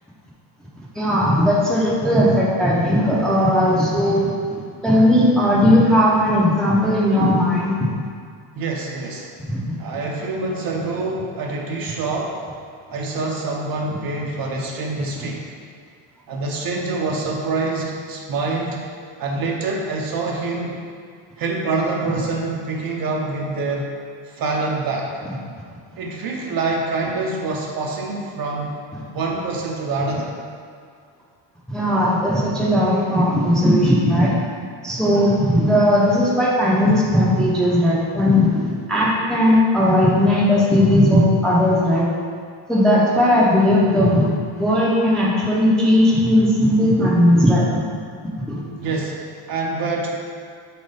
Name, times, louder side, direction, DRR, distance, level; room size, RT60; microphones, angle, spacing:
voice 1, 0.9-4.3 4.8-7.7 9.5-9.8 31.7-34.3 34.8-42.0 42.7-44.3 44.6-47.8 48.5-48.6, left 1 dB, ahead, -6 dB, 0.7 m, -17 dB
voice 2, 8.5-9.3 9.8-12.4 12.9-15.4 16.3-18.8 19.2-20.8 21.4-23.9 24.2-25.1 26.0-28.7 29.1-30.3 48.8-50.2, right 3 dB, 45° right, -1 dB, 0.8 m, -25 dB
4.4 x 4.3 x 5.1 m, 2.1 s
cardioid pair, 150°, 49 cm